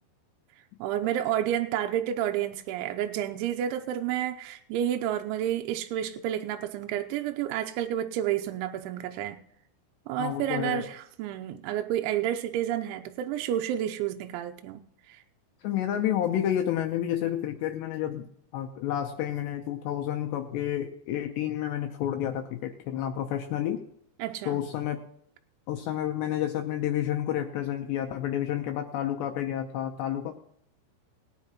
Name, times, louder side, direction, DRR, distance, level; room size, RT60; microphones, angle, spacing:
voice 1, 0.8-9.4 10.1-14.8 15.1-15.2 24.2-24.6, right 11 dB, 85° right, 5 dB, 2.8 m, -30 dB
voice 2, 10.2-10.8 15.6-18.3 18.5-23.8 24.5-25.0 25.7-30.3, left 11 dB, 80° left, 4 dB, 2.5 m, -30 dB
20.0 x 10.5 x 3.0 m, 0.68 s
omnidirectional pair, 5.9 m